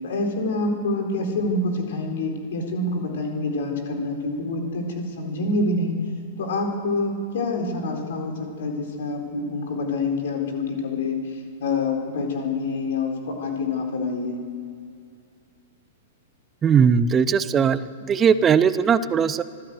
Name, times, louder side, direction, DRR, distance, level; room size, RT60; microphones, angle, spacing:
voice 1, 0.0-6.0 6.4-8.3 8.6-11.2 11.6-13.1 13.4-14.4, left 2 dB, 55° left, 3 dB, 4.4 m, -26 dB
voice 2, 16.6-19.4, right 7 dB, 20° right, 15 dB, 0.9 m, -19 dB
25.0 x 15.5 x 7.9 m, 2.4 s
figure-of-eight pair, 105°, 0 cm